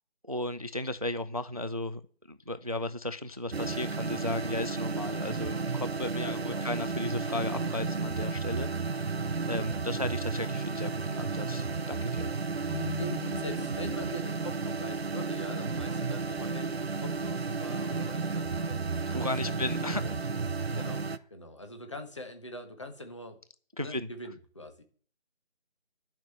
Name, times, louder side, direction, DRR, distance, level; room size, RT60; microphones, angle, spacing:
voice 1, 0.3-2.0 2.3-9.1 9.5-12.3 19.1-20.0 23.8-24.1, left 1 dB, 35° right, 13 dB, 0.4 m, -35 dB
sound 1, 3.5-21.2, right 4 dB, 70° right, 0.9 m, -33 dB
voice 2, 6.1-6.7 12.2-12.3 13.0-20.0 20.3-20.4 20.8-23.4 23.8-24.8, left 1 dB, 25° left, 6 dB, 1.4 m, -43 dB
Keyboard (musical), 12.7-14.5, left 4 dB, 70° left, 0.7 m, -39 dB
11.0 x 5.9 x 7.4 m, 0.44 s
figure-of-eight pair, 170°, 33 cm